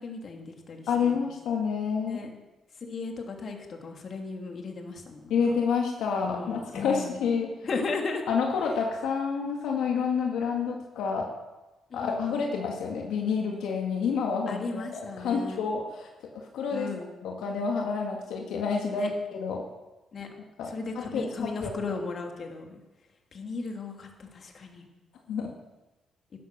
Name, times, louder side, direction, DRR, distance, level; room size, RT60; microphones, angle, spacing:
voice 1, 0.0-1.2 2.0-2.3 2.8-5.4 6.2-7.2 7.6-8.2 11.9-12.5 14.5-15.6 16.7-17.1 18.9-19.1 20.1-20.3 20.7-22.8 23.3-24.9, left 4 dB, 50° left, 2 dB, 2.7 m, -36 dB
voice 2, 0.9-2.2 5.3-7.5 8.3-11.3 11.9-16.9 17.2-19.6 20.6-20.7 21.0-21.2 21.6-21.7 25.3-25.5, left 5 dB, 80° left, 0 dB, 1.9 m, -29 dB
12.0 x 11.0 x 6.7 m, 1.1 s
cardioid pair, 90°, 0 cm